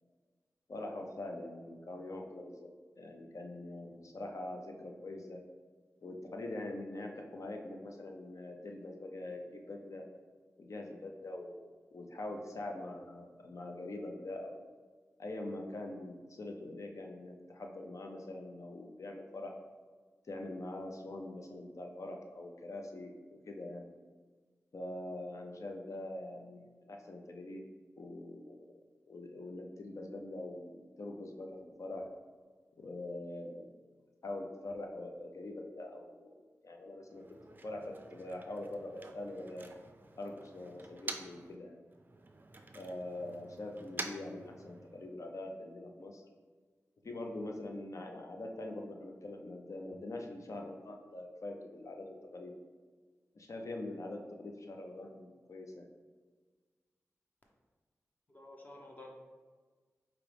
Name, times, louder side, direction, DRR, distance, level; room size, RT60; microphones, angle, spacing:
voice 1, 0.7-2.7 3.0-5.4 6.0-10.0 10.6-14.7 15.2-19.5 20.3-23.1 23.5-23.9 24.7-27.6 28.0-28.7 29.1-32.0 32.8-33.7 34.2-37.2 37.6-39.7 40.2-41.8 42.7-46.2 47.0-52.5 53.3-55.9, left 2 dB, 65° left, 2 dB, 0.6 m, -43 dB
Motor vehicle (road), 37.1-41.6 41.9-45.1, right 2 dB, 35° right, 0.4 m, -48 dB
voice 2, 58.3-59.1, left 1 dB, 30° left, 0 dB, 0.8 m, -51 dB
4.9 x 2.9 x 3.4 m, 1.5 s
wide cardioid pair, 60°, 6 cm